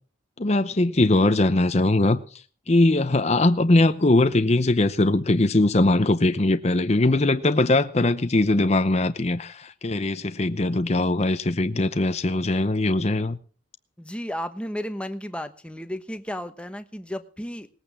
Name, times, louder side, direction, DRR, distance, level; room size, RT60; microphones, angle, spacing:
voice 1, 0.4-13.4, left 2 dB, 35° left, 0.7 m, -21 dB
voice 2, 14.0-17.7, equal, 5° left, 1.0 m, -33 dB
19.5 x 8.6 x 7.0 m
head